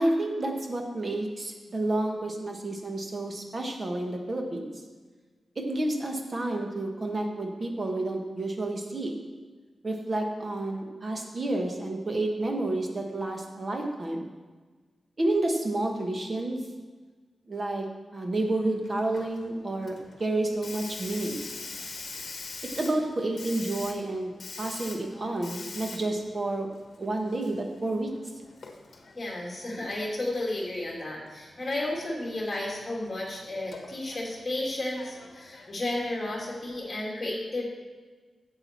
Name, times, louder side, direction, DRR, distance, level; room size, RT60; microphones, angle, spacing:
voice 1, 0.0-4.7 5.6-9.1 9.8-14.2 15.2-16.6 17.5-17.9 18.1-21.4 22.6-24.3 24.6-26.7 27.0-28.1, right 2 dB, 35° right, 3 dB, 1.3 m, -30 dB
Hiss, 18.4-36.8, left 3 dB, 55° left, 1.3 m, -45 dB
voice 2, 29.1-37.7, left 1 dB, 25° left, -3 dB, 2.6 m, -33 dB
11.5 x 7.8 x 4.5 m, 1.4 s
wide cardioid pair, 145°, 0 cm